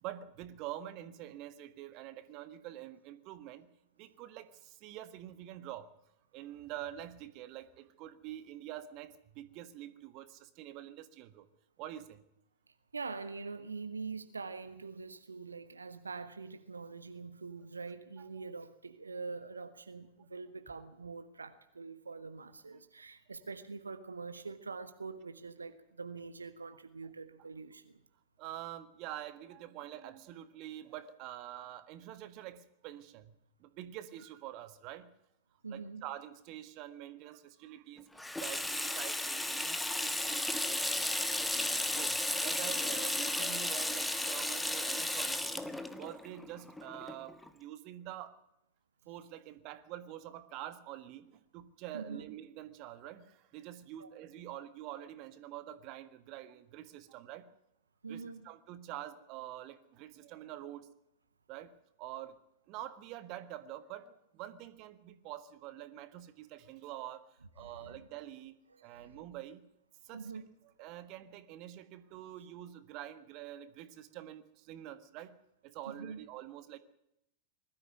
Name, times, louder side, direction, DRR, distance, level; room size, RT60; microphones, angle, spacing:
voice 1, 0.0-3.7 4.0-5.9 6.3-11.5 11.8-12.2 18.3-18.4 28.4-33.3 33.6-35.1 35.7-41.0 41.3-45.7 46.0-48.4 49.1-57.5 58.1-60.9 61.5-61.7 62.0-62.4 62.7-67.3 67.5-68.6 68.8-69.6 70.0-70.4 70.8-75.3 75.6-76.8, right 12 dB, 40° right, 13 dB, 1.6 m, -46 dB
voice 2, 12.7-28.0 35.6-36.0 51.9-52.3 54.0-54.1 58.0-58.4 67.6-68.1 68.8-69.2 70.1-70.4 75.9-76.2, right 4 dB, 75° right, 11 dB, 1.2 m, -44 dB
Water tap faucet / Sink (filling or washing), 38.2-47.5, left 1 dB, 5° left, 1.5 m, -34 dB
21.0 x 13.5 x 9.1 m, 0.80 s
figure-of-eight pair, 90°, 0 cm